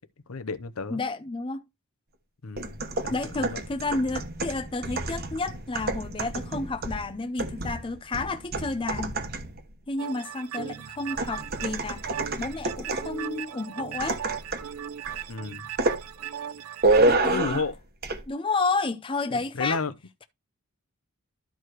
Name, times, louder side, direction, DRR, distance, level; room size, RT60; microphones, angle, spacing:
voice 1, 0.3-1.0 2.4-3.6 15.3-15.7 17.2-17.8 19.3-19.9, left 4 dB, 70° left, 0.8 m, -32 dB
voice 2, 0.9-1.6 3.1-9.2 9.9-14.2 17.1-17.6 18.3-19.8, left 3 dB, 25° left, 0.5 m, -31 dB
sound 1, 2.6-9.6 11.2-13.2 14.0-14.7 15.1-15.3 15.8-16.0 16.8-17.7 18.0-18.2, right 2 dB, 45° right, 1.2 m, -28 dB
sound 2, 10.0-17.2, right 9 dB, 75° right, 0.6 m, -37 dB
12.5 x 4.8 x 3.0 m
head